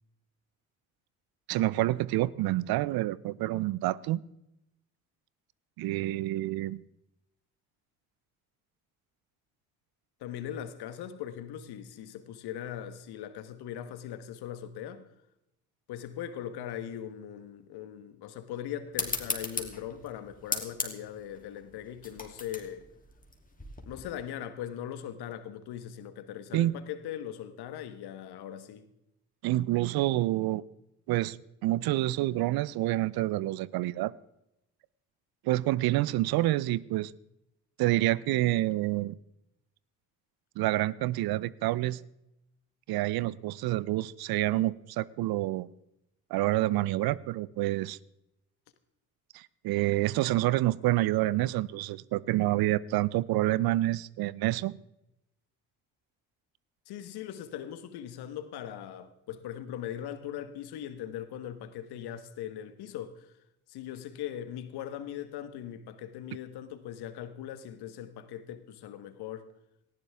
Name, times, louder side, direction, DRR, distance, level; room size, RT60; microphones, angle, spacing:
voice 1, 1.5-4.2 5.8-6.8 26.5-26.8 29.4-30.6 31.1-34.1 35.4-37.1 37.8-39.2 40.6-42.0 42.9-45.7 46.3-48.0 49.3-54.8, right 16 dB, 65° right, 0.6 m, -28 dB
voice 2, 10.2-15.1 15.9-22.8 23.8-28.9 56.9-63.3 63.7-69.4, left 10 dB, 70° left, 1.4 m, -40 dB
sound 1, 18.9-24.0, left 3 dB, 20° left, 3.0 m, -37 dB
18.0 x 15.0 x 3.6 m
hypercardioid pair, 45°, 41 cm